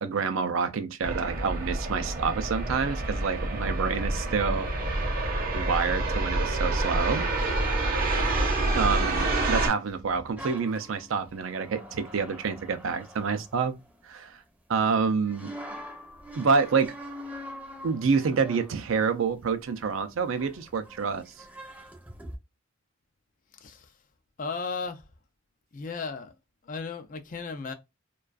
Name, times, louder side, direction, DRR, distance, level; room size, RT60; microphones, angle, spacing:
voice 1, 0.0-4.7 5.5-7.2 8.7-13.8 14.1-14.4 14.7-15.8 16.3-16.9 17.8-21.2, right 5 dB, 75° right, 0.4 m, -27 dB
sound 1, 1.0-9.7, right 2 dB, 45° right, 0.7 m, -27 dB
sound 2, 10.4-14.4 15.2-22.4, equal, 5° right, 0.6 m, -44 dB
voice 2, 24.4-25.0 25.7-26.3 26.7-27.7, left 4 dB, 40° left, 0.4 m, -35 dB
2.4 x 2.3 x 2.2 m
head